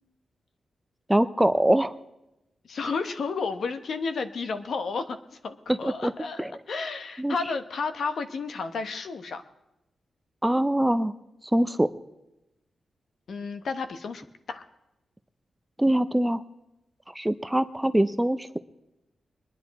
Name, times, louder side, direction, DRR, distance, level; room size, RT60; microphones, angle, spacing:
voice 1, 1.1-2.0 5.8-6.1 6.4-6.5 7.2-7.3 10.4-11.1 11.5-11.9 15.8-16.4 17.1-18.6, right 1 dB, 5° right, 12 dB, 0.4 m, -23 dB
voice 2, 2.6-5.2 5.4-9.4 13.3-14.6, left 4 dB, 60° left, 9 dB, 1.0 m, -32 dB
22.5 x 10.5 x 4.1 m, 0.94 s
wide cardioid pair, 150°, 0 cm